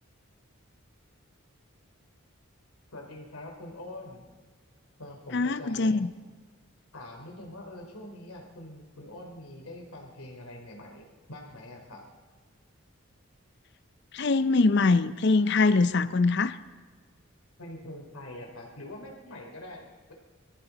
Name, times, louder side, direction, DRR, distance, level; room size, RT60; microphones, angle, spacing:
voice 1, 2.9-4.2 5.0-5.9 6.9-12.0 17.6-20.1, left 1 dB, 85° left, 1 dB, 3.3 m, -44 dB
voice 2, 5.3-6.1 14.1-16.6, left 3 dB, 50° left, 14 dB, 0.5 m, -23 dB
24.0 x 14.0 x 4.0 m, 1.5 s
head